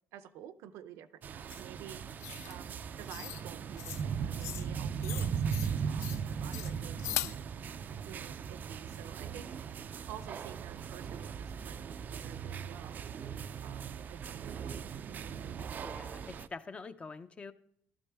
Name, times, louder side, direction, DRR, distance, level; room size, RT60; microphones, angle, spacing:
voice 1, 0.1-2.0 2.4-7.4 8.0-9.5 10.1-13.0 13.6-15.5, right 10 dB, 80° right, 10 dB, 0.6 m, -51 dB
sound 1, 1.2-16.5, right 7 dB, 40° right, 0.4 m, -38 dB
sound 2, 1.5-1.6 2.2-2.6 3.1-3.4 3.8-4.0 4.4-4.7 5.0-5.7 6.0-6.2 6.5-7.4, left 14 dB, 80° left, 0.3 m, -39 dB
voice 2, 15.8-17.5, left 4 dB, 25° left, 11 dB, 0.6 m, -45 dB
13.0 x 12.5 x 3.4 m, 0.71 s
cardioid pair, 120°, 5 cm